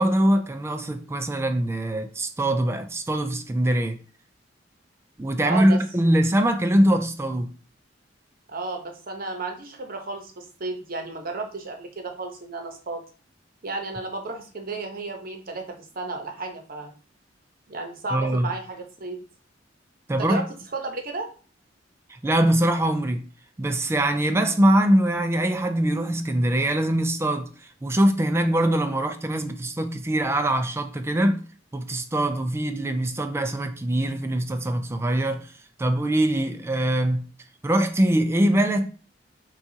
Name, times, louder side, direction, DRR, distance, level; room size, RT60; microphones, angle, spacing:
voice 1, 0.0-4.0 5.2-7.5 18.1-18.5 20.1-20.4 22.2-23.2 23.6-27.5 27.8-31.4 31.7-35.5 35.8-37.2 37.6-38.9, right 1 dB, 15° right, 0.3 m, -22 dB
voice 2, 5.4-5.8 8.5-13.0 13.6-16.9 17.7-19.2 20.2-20.5 20.7-21.3, right 3 dB, 50° right, 0.8 m, -33 dB
5.7 x 2.4 x 2.8 m
head